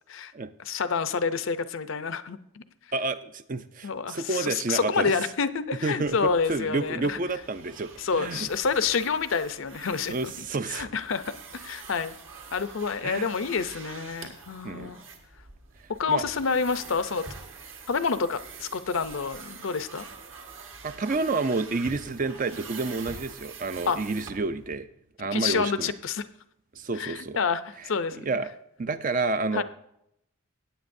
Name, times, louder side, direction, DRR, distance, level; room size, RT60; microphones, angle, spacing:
voice 1, 0.7-2.6 3.8-7.2 8.0-10.3 10.7-11.2 11.5-12.2 12.5-15.0 16.0-17.2 17.9-20.0 23.9-24.0 25.3-26.2 27.0-28.3 29.5-29.6, left 5 dB, 60° left, 12 dB, 0.6 m, -28 dB
voice 2, 2.9-5.2 5.8-8.5 10.1-10.9 13.0-13.3 14.6-15.0 16.1-16.2 20.8-24.9 25.2-25.9 26.7-27.4 28.2-28.5 28.8-29.6, right 3 dB, 35° right, 12 dB, 0.4 m, -29 dB
sound 1, 6.0-24.8, right 4 dB, 60° right, 1.6 m, -45 dB
17.0 x 9.1 x 2.6 m, 0.76 s
head